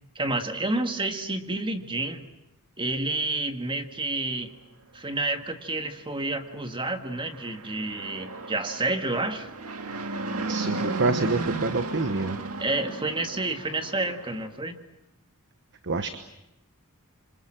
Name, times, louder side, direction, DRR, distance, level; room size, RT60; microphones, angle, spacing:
voice 1, 0.2-2.3 2.8-4.5 4.9-9.5 12.6-14.8, right 2 dB, 25° right, 6 dB, 1.8 m, -29 dB
Fixed-wing aircraft airplane, 7.1-14.4, right 3 dB, 75° right, 2.0 m, -34 dB
voice 2, 10.5-12.4 15.8-16.2, right 3 dB, 55° right, 9 dB, 1.2 m, -27 dB
28.0 x 25.5 x 7.6 m, 0.92 s
head